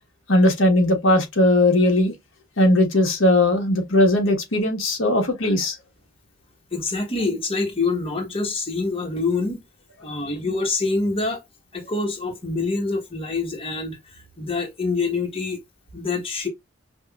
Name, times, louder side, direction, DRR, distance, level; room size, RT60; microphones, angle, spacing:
voice 1, 0.3-2.1 2.6-5.8, left 1 dB, 90° left, 1.3 m, -18 dB
voice 2, 6.7-9.6 10.0-11.4 11.7-15.6 15.9-16.5, left 3 dB, 30° left, 1.1 m, -26 dB
5.4 x 2.4 x 2.3 m
head